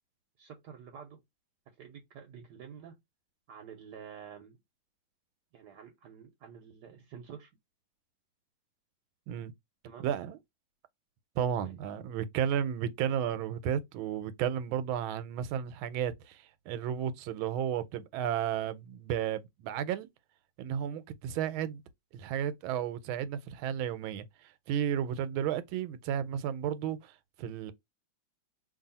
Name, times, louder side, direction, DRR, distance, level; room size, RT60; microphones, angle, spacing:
voice 1, 0.4-1.2 1.8-3.0 3.5-4.6 5.5-7.5 9.8-10.1 11.6-11.8, right 7 dB, 70° right, 1.1 m, -49 dB
voice 2, 10.0-10.4 11.4-20.1 20.6-21.8 22.1-27.1 27.4-27.7, right 9 dB, 90° right, 1.4 m, -33 dB
2.8 x 2.6 x 4.0 m
omnidirectional pair, 2.2 m